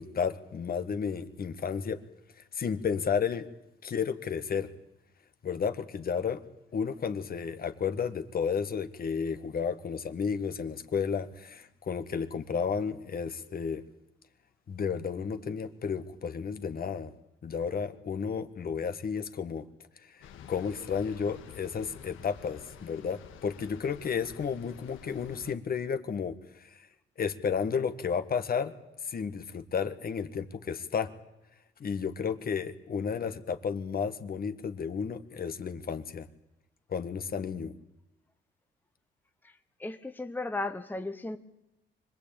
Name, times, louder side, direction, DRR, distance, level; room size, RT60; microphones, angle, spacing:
voice 1, 0.0-2.0 2.5-3.5 3.8-4.7 5.4-6.4 6.7-13.8 14.7-17.1 17.4-19.6 20.1-20.2 20.5-26.8 27.2-28.7 29.0-31.1 31.8-36.3 36.9-37.7, left 6 dB, 50° left, 9 dB, 1.8 m, -32 dB
sound 1, 20.2-25.5, left 8 dB, 85° left, 1.9 m, -49 dB
voice 2, 39.8-41.4, left 2 dB, 10° left, 7 dB, 1.2 m, -35 dB
25.0 x 19.5 x 8.9 m, 0.90 s
cardioid pair, 90°, 20 cm